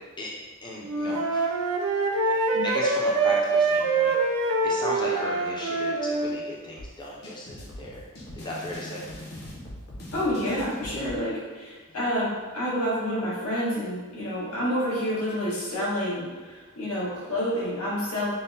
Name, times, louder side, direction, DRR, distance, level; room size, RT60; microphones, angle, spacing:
voice 1, 0.6-1.5 2.3-2.4 2.6-8.0 8.3-9.1 10.9-11.1, left 1 dB, 20° left, -4 dB, 0.4 m, -35 dB
Wind instrument woodwind instrument, 0.8-6.4, right 3 dB, 70° right, 0.5 m, -25 dB
sound 1, 6.8-11.2, left 1 dB, 50° left, 0.8 m, -41 dB
voice 2, 10.1-18.3, equal, 85° left, -7 dB, 1.3 m, -28 dB
5.4 x 2.0 x 2.7 m, 1.3 s
head